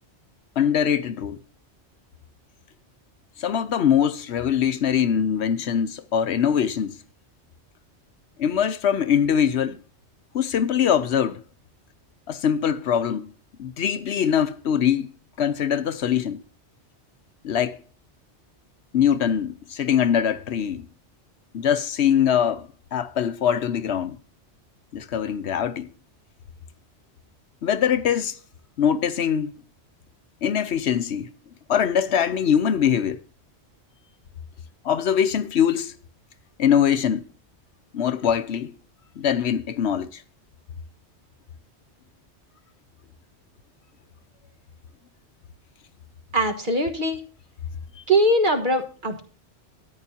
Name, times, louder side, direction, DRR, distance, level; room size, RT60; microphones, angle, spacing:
voice 1, 0.6-1.4 3.4-7.0 8.4-9.8 10.3-11.4 12.3-13.3 13.6-15.1 15.4-16.4 17.4-17.8 18.9-20.9 21.5-24.2 24.9-25.9 27.6-28.4 28.8-29.5 30.4-31.3 31.7-33.2 34.8-35.9 36.6-37.2 37.9-38.7 39.2-40.2 48.0-48.1, left 8 dB, 70° left, 1.0 m, -22 dB
voice 2, 46.3-47.2 48.1-49.2, right 1 dB, 45° right, 1.6 m, -21 dB
13.5 x 9.9 x 2.8 m
omnidirectional pair, 1.2 m